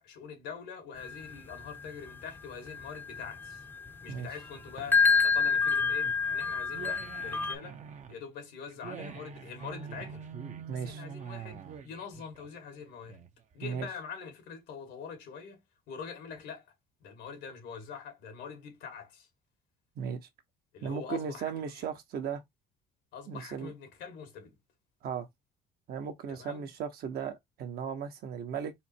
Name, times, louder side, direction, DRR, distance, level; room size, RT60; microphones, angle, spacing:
voice 1, 0.0-3.7 4.0-7.8 8.1-10.3 10.7-13.2 13.5-16.7 17.0-19.3 20.7-21.8 23.1-24.6 26.3-26.7, left 6 dB, 85° left, 2.0 m, -44 dB
sound 1, 1.0-7.6, left 5 dB, 10° left, 0.7 m, -29 dB
sound 2, 4.5-13.5, right 7 dB, 45° right, 0.7 m, -46 dB
voice 2, 10.7-11.0 13.6-13.9 20.0-20.3 20.8-22.4 23.3-23.7 25.0-25.3 25.9-28.7, right 7 dB, 65° right, 1.2 m, -36 dB
4.2 x 2.1 x 4.3 m
cardioid pair, 110°, 17 cm